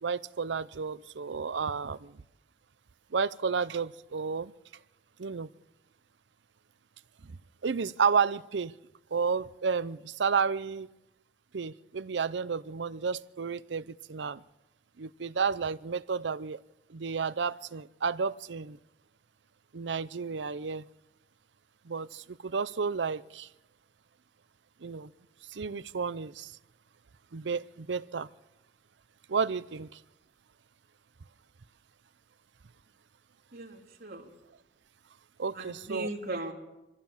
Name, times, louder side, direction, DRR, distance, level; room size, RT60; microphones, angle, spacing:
voice 1, 0.0-2.2 3.1-4.5 5.2-5.5 7.2-7.4 7.6-8.7 9.1-10.9 11.5-14.4 15.0-16.6 16.9-18.8 19.7-20.8 21.8-23.5 24.8-25.1 25.5-26.6 27.3-28.3 29.3-30.0 35.4-36.1, right 5 dB, 85° right, 0.6 m, -31 dB
voice 2, 33.5-34.3 35.5-36.5, right 2 dB, 60° right, 3.4 m, -38 dB
24.0 x 15.5 x 7.3 m
head